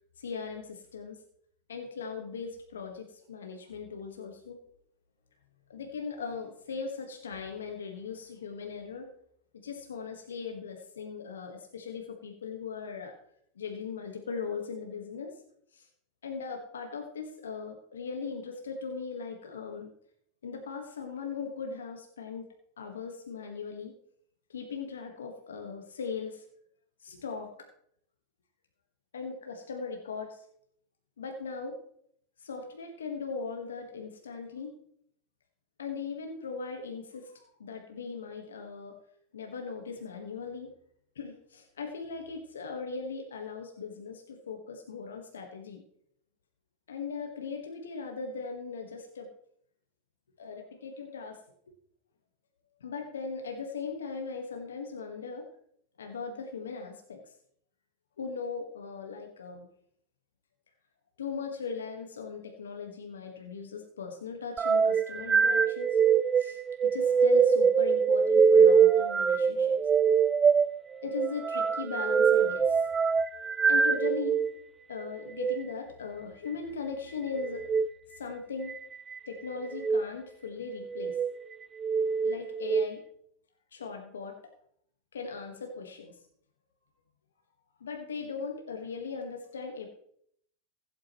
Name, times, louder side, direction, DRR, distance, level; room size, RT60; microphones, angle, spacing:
voice 1, 0.2-1.2 1.7-4.6 5.7-9.1 9.5-13.1 13.5-15.3 15.7-15.9 16.2-19.9 20.4-22.5 22.8-23.9 24.5-26.4 27.0-27.5 29.1-30.4 31.2-31.8 32.4-34.8 35.8-38.9 39.3-40.7 41.1-45.8 46.9-49.3 50.4-51.4 52.8-55.5 56.0-57.2 58.2-59.7 61.2-66.0 66.4-69.8 71.0-72.9 73.7-74.4 74.9-77.6 78.2-78.8 79.3-81.2 82.2-83.0 83.7-84.4 85.1-86.2 87.8-89.9, left 5 dB, 85° left, 3 dB, 1.4 m, -39 dB
sound 1, 64.6-74.5 75.3-75.6 77.6-77.9 78.7-79.2 79.7-80.0 80.8-81.3 81.8-82.9, right 6 dB, 25° right, 0.4 m, -24 dB
15.5 x 8.5 x 3.1 m, 0.68 s
hypercardioid pair, 100°, 0 cm